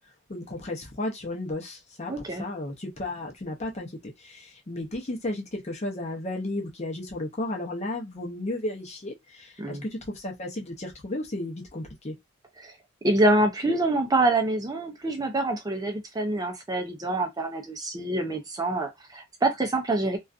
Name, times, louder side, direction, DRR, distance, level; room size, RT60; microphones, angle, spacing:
voice 1, 0.3-2.1 2.4-12.1, left 1 dB, 35° left, 0.6 m, -34 dB
voice 2, 2.1-2.4 9.6-9.8 12.6-12.7 13.0-20.2, right 2 dB, 20° right, 0.4 m, -26 dB
2.5 x 2.3 x 2.4 m
head